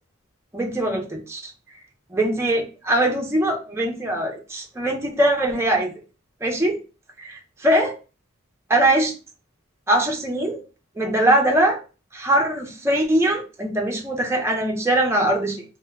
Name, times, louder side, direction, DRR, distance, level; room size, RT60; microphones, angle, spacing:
voice 1, 0.5-1.5 2.1-5.9 6.4-6.8 7.2-7.9 8.7-9.1 9.9-10.6 11.0-11.8 12.1-15.6, right 1 dB, 15° right, 0 dB, 0.5 m, -21 dB
2.1 x 2.1 x 3.3 m, 0.33 s
head